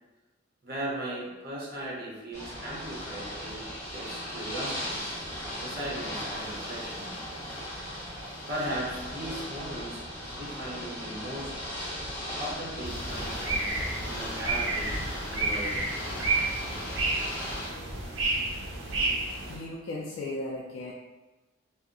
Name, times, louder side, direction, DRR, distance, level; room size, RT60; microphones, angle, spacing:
voice 1, 0.6-5.0 5.6-7.1 8.5-11.6 12.4-13.7 14.0-15.0 15.3-15.9, right 1 dB, 55° right, -4 dB, 0.8 m, -37 dB
Ocean / Boat Water vehicle, 2.3-17.7, equal, 15° left, 1.5 m, -37 dB
sound 1, 12.8-19.6, right 3 dB, 90° right, 0.6 m, -31 dB
voice 2, 19.5-20.9, left 2 dB, 80° left, -3 dB, 0.4 m, -36 dB
2.7 x 2.1 x 3.7 m, 1.1 s
head